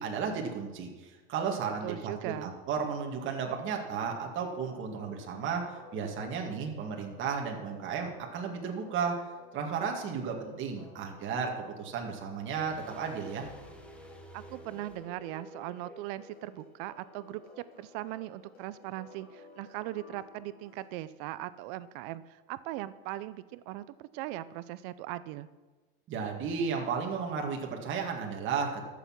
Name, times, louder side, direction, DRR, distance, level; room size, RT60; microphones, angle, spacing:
voice 1, 0.0-9.2 9.5-13.5 26.1-28.8, right 6 dB, 40° right, 2 dB, 2.1 m, -34 dB
voice 2, 1.8-2.5 14.3-17.4 17.8-25.5, right 15 dB, 55° right, 16 dB, 0.6 m, -39 dB
sound 1, 4.6-20.9, left 3 dB, 40° left, 3.8 m, -55 dB
sound 2, 12.5-17.4 17.6-17.7, right 1 dB, 5° left, 1.4 m, -51 dB
13.5 x 7.2 x 6.0 m, 1.3 s
supercardioid pair, 125°, 31 cm